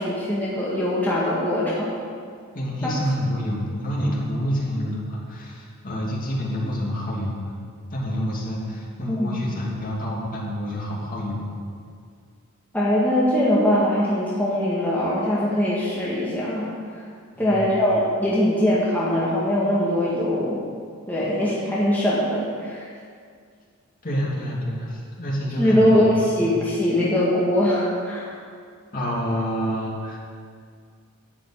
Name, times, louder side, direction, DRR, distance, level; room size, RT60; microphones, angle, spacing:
voice 1, 0.0-2.0 9.1-9.5 12.7-16.7 17.4-20.6 21.1-22.9 25.6-28.3, left 1 dB, 10° left, -8 dB, 1.7 m, -22 dB
voice 2, 2.5-7.5 7.9-11.5 17.3-17.7 24.0-26.1 26.4-26.5 28.9-30.2, equal, 40° left, -5 dB, 2.6 m, -28 dB
11.5 x 5.7 x 8.5 m, 2.1 s
head